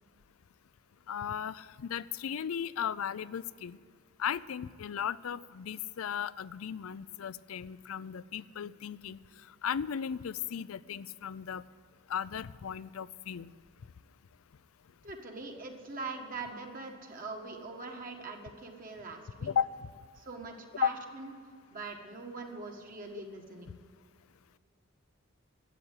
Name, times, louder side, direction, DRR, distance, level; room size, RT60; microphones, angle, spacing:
voice 1, 1.1-3.8 4.2-11.6 12.1-13.5 19.4-19.7 20.8-20.9, left 8 dB, 85° left, 18 dB, 0.4 m, -35 dB
voice 2, 15.0-19.5 20.2-21.3 21.7-23.8, right 3 dB, 40° right, 2 dB, 1.8 m, -42 dB
12.5 x 8.8 x 9.9 m, 2.2 s
head